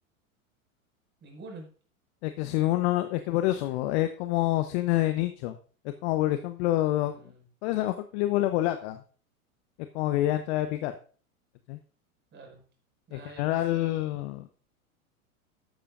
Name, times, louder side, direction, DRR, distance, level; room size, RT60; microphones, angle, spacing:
voice 1, 1.2-1.7 7.0-7.5 12.3-12.6 13.1-14.2, right 2 dB, 25° right, 2 dB, 5.8 m, -48 dB
voice 2, 2.2-5.6 5.8-7.2 7.6-9.0 9.9-10.9 11.7-11.8 13.1-14.5, left 15 dB, 50° left, 9 dB, 1.0 m, -27 dB
13.5 x 13.0 x 2.6 m, 0.41 s
hypercardioid pair, 95°, 43 cm